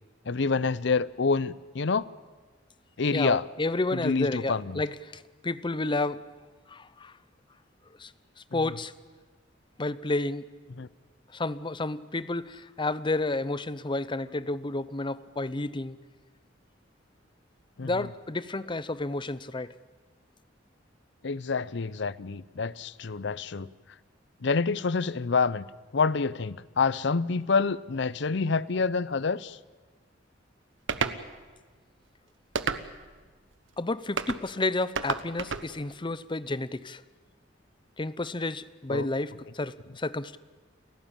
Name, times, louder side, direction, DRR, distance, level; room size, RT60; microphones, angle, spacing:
voice 1, 0.3-2.1 3.0-3.4 3.9-4.8 8.5-8.7 10.8-10.9 17.8-18.1 21.2-23.7 24.4-25.7 25.9-29.6 38.9-39.1, left 4 dB, 65° left, 0.7 m, -27 dB
voice 2, 3.1-6.2 6.7-7.1 8.0-8.1 8.5-8.9 9.8-10.5 11.3-16.0 17.8-19.7 33.8-37.0 38.0-40.4, left 2 dB, 25° left, 0.7 m, -31 dB
sound 1, 30.9-31.2 32.5-33.1 34.2-34.4 34.9-35.7, right 5 dB, 85° right, 1.2 m, -30 dB
29.5 x 15.5 x 8.9 m
head